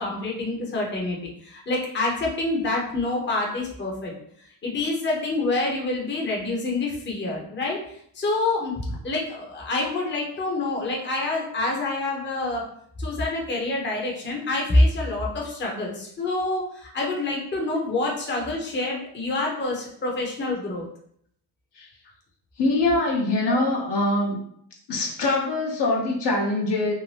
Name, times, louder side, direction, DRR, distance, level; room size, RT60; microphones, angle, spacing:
voice 1, 0.0-4.1 4.6-12.6 13.0-20.9 23.5-23.7, left 2 dB, 25° left, -2 dB, 0.7 m, -27 dB
voice 2, 22.6-24.4 24.9-26.9, left 2 dB, 55° left, -2 dB, 0.9 m, -23 dB
2.7 x 2.1 x 3.2 m, 0.67 s
cardioid pair, 90°, 48 cm